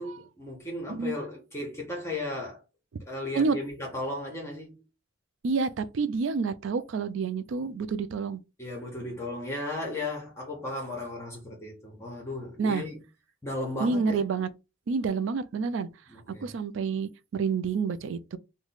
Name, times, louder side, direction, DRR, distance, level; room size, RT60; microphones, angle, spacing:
voice 1, 0.0-2.6 3.1-4.8 8.6-13.0 13.4-14.2 16.1-16.5, left 2 dB, 15° left, 0.9 m, -35 dB
voice 2, 5.4-8.4 12.6-12.8 13.8-14.5 14.9-15.9 16.4-18.4, right 5 dB, 70° right, 0.4 m, -28 dB
3.1 x 2.2 x 3.9 m
head